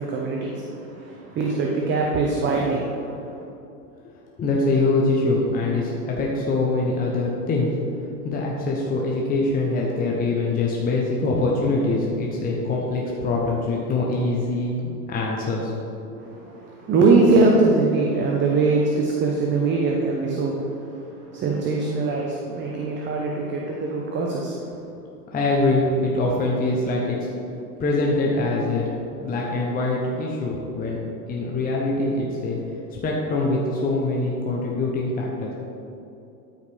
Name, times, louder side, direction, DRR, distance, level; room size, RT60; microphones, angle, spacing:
voice 1, 0.0-3.4 16.2-20.6 20.9-21.0 21.3-24.7, right 3 dB, 25° right, -1 dB, 0.8 m, -22 dB
voice 2, 4.4-7.7 8.2-15.7 16.1-16.2 25.3-27.3 27.8-28.9 29.2-31.0 31.3-32.6 33.0-35.5, left 2 dB, 20° left, -3 dB, 1.0 m, -23 dB
12.5 x 5.3 x 3.5 m, 2.8 s
hypercardioid pair, 105°, 48 cm